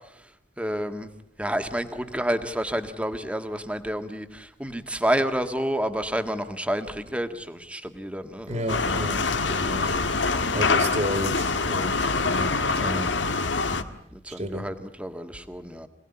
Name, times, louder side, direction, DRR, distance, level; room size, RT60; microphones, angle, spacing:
voice 1, 0.6-1.1 1.4-8.8 14.1-15.9, equal, 5° right, 1.6 m, -29 dB
voice 2, 8.5-10.0 10.5-13.2 14.3-14.7, equal, 40° right, 2.4 m, -32 dB
sound 1, 8.7-13.8, left 4 dB, 90° left, 1.6 m, -25 dB
26.5 x 18.5 x 9.9 m
head